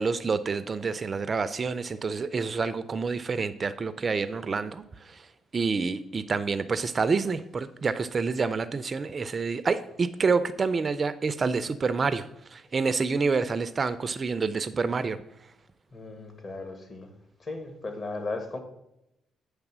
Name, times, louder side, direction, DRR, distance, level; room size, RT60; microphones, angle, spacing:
voice 1, 0.0-5.2 5.5-12.2 12.5-15.2, right 4 dB, 35° right, 13 dB, 0.4 m, -28 dB
voice 2, 15.9-17.1 17.4-18.6, left 3 dB, 40° left, 5 dB, 1.6 m, -36 dB
8.9 x 3.3 x 6.1 m, 0.84 s
cardioid pair, 90°, 0 cm